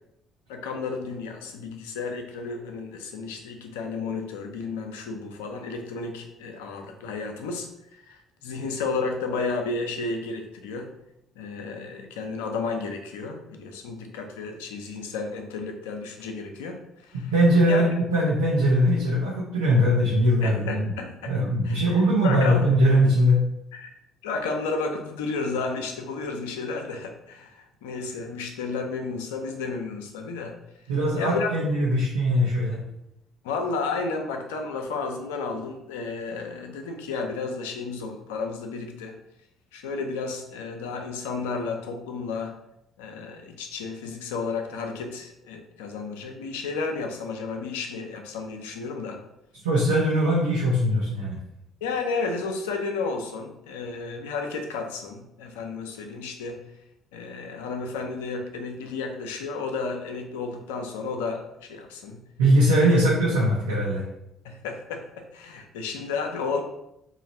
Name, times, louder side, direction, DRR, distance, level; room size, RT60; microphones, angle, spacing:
voice 1, 0.5-10.9 11.4-17.3 17.7-17.8 20.4-21.4 21.6-22.7 23.7-23.9 24.2-30.5 31.2-31.5 33.4-39.1 39.7-42.6 43.0-49.2 51.8-56.6 57.1-62.2 62.6-62.8 64.4-66.6, left 4 dB, 85° left, 4 dB, 0.5 m, -32 dB
voice 2, 17.1-20.9 21.3-23.4 30.9-32.8 49.6-51.4 62.4-64.0, equal, 90° right, -5 dB, 0.6 m, -21 dB
3.1 x 2.4 x 4.2 m, 0.82 s
hypercardioid pair, 55°, 0 cm